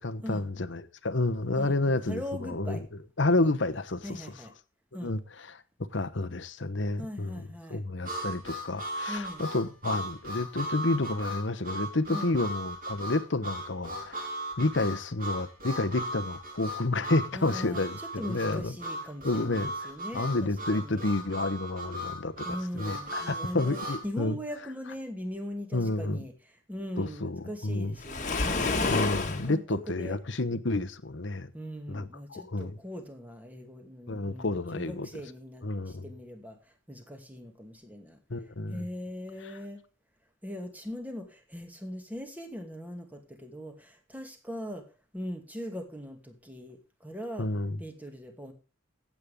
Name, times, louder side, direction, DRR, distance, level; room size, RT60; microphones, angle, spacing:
voice 1, 0.0-2.8 3.2-4.3 5.0-5.6 5.9-14.3 14.6-18.8 19.2-24.4 25.7-26.2 27.0-28.0 28.8-31.5 31.9-32.8 34.1-35.2 35.6-36.1 38.3-38.9 39.4-39.5 47.4-47.8, left 2 dB, 60° left, 1.0 m, -30 dB
voice 2, 1.6-2.8 4.0-4.5 4.9-5.1 7.0-7.8 9.1-9.4 12.1-12.3 17.3-21.0 22.4-23.8 24.0-26.3 26.7-28.8 29.4-29.6 29.9-30.2 31.5-36.6 36.9-38.2 38.7-39.8 40.4-44.9 45.1-47.5 47.8-48.5, equal, 10° right, 2.5 m, -40 dB
Harmonica, 8.0-24.0, right 1 dB, 45° right, 4.1 m, -37 dB
Waves surf, 28.0-29.5, left 3 dB, 40° left, 1.8 m, -28 dB
15.5 x 8.6 x 3.7 m
head